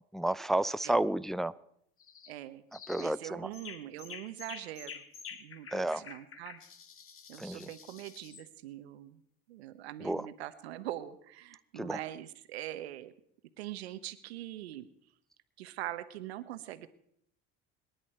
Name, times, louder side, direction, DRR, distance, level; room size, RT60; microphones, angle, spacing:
voice 1, 0.1-1.5 2.9-3.5 5.7-6.0 7.4-7.7 10.0-10.3 11.7-12.0, right 1 dB, ahead, 14 dB, 0.6 m, -31 dB
sound 1, 2.0-2.3 2.7-3.1 3.5-8.5, left 6 dB, 45° left, 2.0 m, -48 dB
voice 2, 2.3-2.6 3.0-5.0 5.4-6.6 7.3-9.2 9.5-13.1 13.6-14.9 15.6-16.9, right 13 dB, 90° right, 12 dB, 1.1 m, -43 dB
26.0 x 11.0 x 4.5 m, 0.71 s
hypercardioid pair, 70°, 31 cm